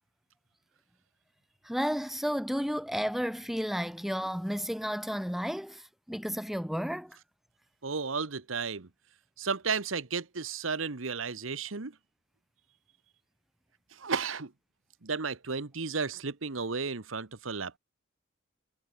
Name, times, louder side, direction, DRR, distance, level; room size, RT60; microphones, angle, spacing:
voice 1, 1.6-7.2, equal, ahead, 3.5 m, -32 dB
voice 2, 7.8-8.9 9.4-11.9 13.9-14.5 15.0-17.8, right 5 dB, 75° right, 1.2 m, -33 dB
head